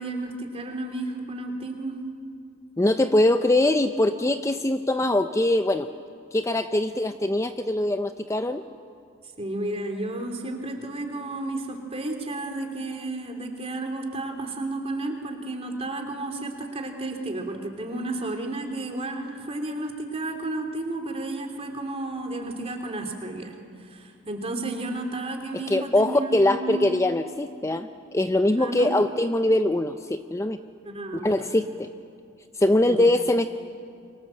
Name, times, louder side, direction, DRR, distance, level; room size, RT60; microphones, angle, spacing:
voice 1, 0.0-2.0 9.4-26.9 28.6-29.0 30.8-31.4 32.8-33.1, right 2 dB, 30° right, 4 dB, 3.1 m, -32 dB
voice 2, 2.8-5.9 6.3-8.6 25.7-30.6 31.2-31.9 32.6-33.5, left 1 dB, 15° left, 9 dB, 0.6 m, -22 dB
29.0 x 24.0 x 7.7 m, 2.3 s
head